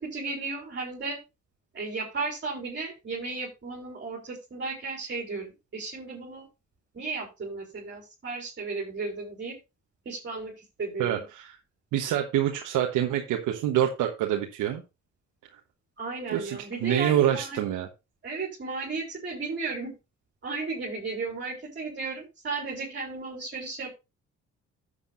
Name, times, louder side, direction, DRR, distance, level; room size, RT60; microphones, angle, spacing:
voice 1, 0.0-1.2 1.7-6.4 6.9-9.5 10.1-10.5 10.8-11.2 16.0-17.6 18.2-19.9 20.4-24.0, right 3 dB, 40° right, -3 dB, 4.2 m, -34 dB
voice 2, 11.0-11.6 11.9-14.8 16.3-17.9, right 11 dB, 85° right, 2 dB, 1.3 m, -26 dB
13.0 x 8.2 x 2.6 m, 0.26 s
cardioid pair, 90°, 30 cm